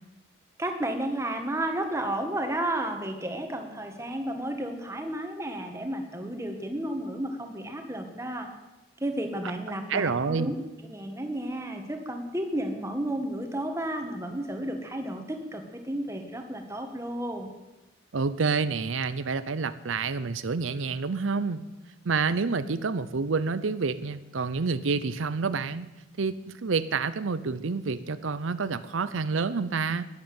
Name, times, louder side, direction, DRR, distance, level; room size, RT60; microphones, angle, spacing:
voice 1, 0.6-8.5 9.0-10.6 10.8-17.5, right 1 dB, 15° right, 4 dB, 1.8 m, -32 dB
voice 2, 9.9-10.5 18.1-21.6 22.0-25.9 26.2-30.0, right 4 dB, 90° right, 14 dB, 0.7 m, -28 dB
12.0 x 10.5 x 8.8 m, 1.0 s
head